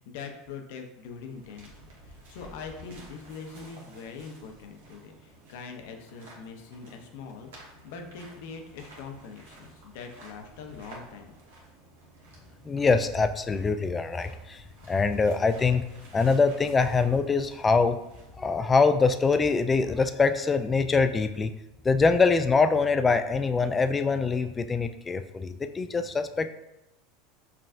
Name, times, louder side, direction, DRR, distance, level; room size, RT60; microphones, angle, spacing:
voice 1, 0.0-1.7 2.1-7.5 7.8-11.4, left 5 dB, 70° left, 4 dB, 0.6 m, -42 dB
sound 1, 0.9-19.1, right 1 dB, 75° right, 1.1 m, -52 dB
voice 2, 12.6-15.9 16.1-18.0 18.4-21.5 21.8-26.5, left 4 dB, 20° left, 9 dB, 0.3 m, -24 dB
5.7 x 2.4 x 2.4 m, 0.90 s
hypercardioid pair, 95°, 0 cm